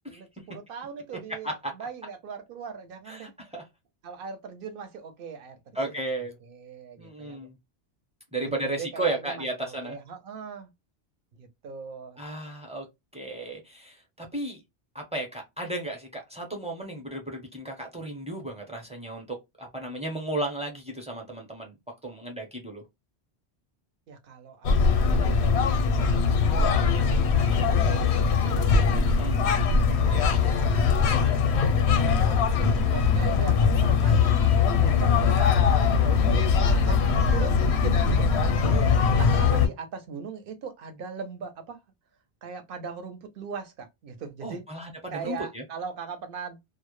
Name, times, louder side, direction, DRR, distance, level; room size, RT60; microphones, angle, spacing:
voice 1, 0.1-3.4 4.0-6.1 6.4-7.5 8.4-10.7 11.3-12.2 24.1-26.8 27.3-28.4 28.7-28.9 30.0-30.3 30.7-34.5 34.8-37.0 37.3-38.3 38.6-41.8 42.4-44.6 45.1-46.6, right 5 dB, 65° right, 0.7 m, -40 dB
voice 2, 3.1-3.6 5.7-6.3 7.0-7.6 8.3-10.0 12.2-12.9 13.1-14.6 14.9-21.7 22.0-22.8 28.9-29.4 44.4-45.6, right 2 dB, 10° right, 0.5 m, -34 dB
sound 1, 24.6-39.7, left 5 dB, 80° left, 0.8 m, -21 dB
2.1 x 2.0 x 2.9 m
omnidirectional pair, 1.1 m